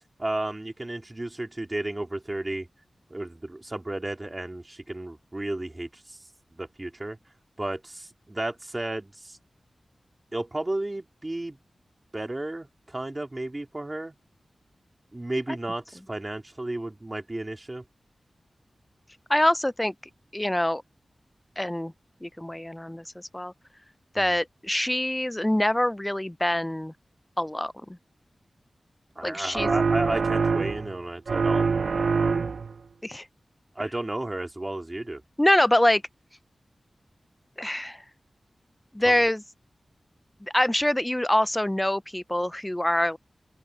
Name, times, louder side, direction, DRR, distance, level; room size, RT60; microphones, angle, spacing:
voice 1, 0.2-2.7 3.1-6.2 6.5-7.2 7.6-9.4 10.3-11.6 12.1-14.1 15.1-17.8 24.2-24.3 29.2-31.7 33.8-35.2 39.1-39.2, right 2 dB, 25° right, 3.5 m, -33 dB
voice 2, 19.3-19.9 20.3-20.8 21.6-21.9 22.2-23.5 24.1-26.9 27.4-27.7 29.2-29.7 33.0-33.3 35.4-36.0 37.6-38.0 38.9-39.4 40.4-43.2, left 1 dB, 10° left, 0.4 m, -25 dB
sound 1, 29.5-31.0 31.3-32.8, right 5 dB, 85° right, 0.5 m, -24 dB
open air
wide cardioid pair, 105°, 0 cm